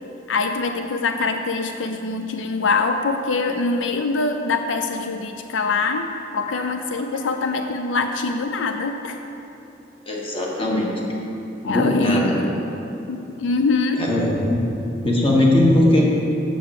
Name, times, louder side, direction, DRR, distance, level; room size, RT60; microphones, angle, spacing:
voice 1, 0.3-9.2 11.6-12.5 13.1-14.1, left 3 dB, 85° left, 6 dB, 0.5 m, -24 dB
voice 2, 10.0-10.9 11.6-12.4 14.0-14.6 15.0-16.1, left 1 dB, 30° left, -3 dB, 1.4 m, -19 dB
7.8 x 6.7 x 6.5 m, 2.9 s
head